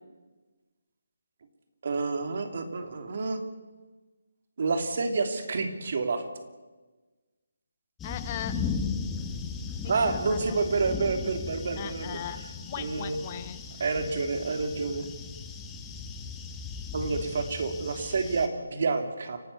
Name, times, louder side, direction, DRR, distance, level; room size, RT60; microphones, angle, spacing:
voice 1, 1.8-3.4 4.6-6.2 9.8-12.2 12.8-13.2 13.8-15.1 16.9-19.4, right 4 dB, 50° right, 7 dB, 2.8 m, -29 dB
voice 2, 8.0-8.7 9.8-10.5 11.8-13.6, left 10 dB, 30° left, 13 dB, 0.9 m, -38 dB
sound 1, 8.0-18.5, left 5 dB, 10° left, 1.6 m, -37 dB
29.5 x 12.5 x 7.1 m, 1.3 s
figure-of-eight pair, 155°, 0 cm